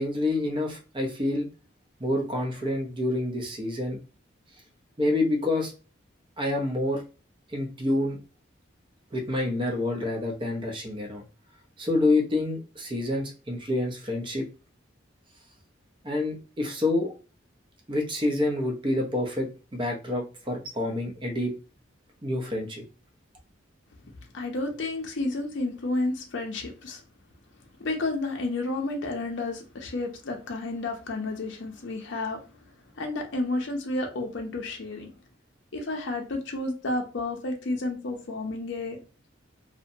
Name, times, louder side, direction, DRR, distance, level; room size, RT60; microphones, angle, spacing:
voice 1, 0.0-1.5 2.0-4.0 5.0-5.7 6.4-7.0 7.5-8.2 9.1-11.2 11.8-14.5 16.0-17.1 17.9-21.5 22.2-22.8, left 2 dB, 25° right, 2 dB, 0.6 m, -27 dB
voice 2, 24.3-27.0 27.8-35.2 35.7-39.0, left 2 dB, 65° left, 1 dB, 0.6 m, -31 dB
2.6 x 2.1 x 2.6 m, 0.34 s
head